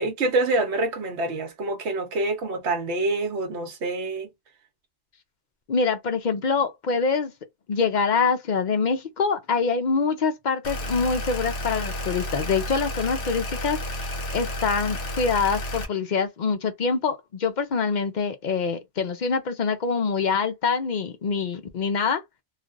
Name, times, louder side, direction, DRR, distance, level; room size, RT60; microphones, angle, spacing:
voice 1, 0.0-4.3, right 2 dB, 70° right, 1.2 m, -26 dB
voice 2, 5.7-7.3 7.7-14.0 14.3-22.2, left 5 dB, 55° left, 0.6 m, -25 dB
sound 1, 10.6-15.9, left 1 dB, 85° left, 1.1 m, -31 dB
3.2 x 2.4 x 2.4 m
omnidirectional pair, 1.2 m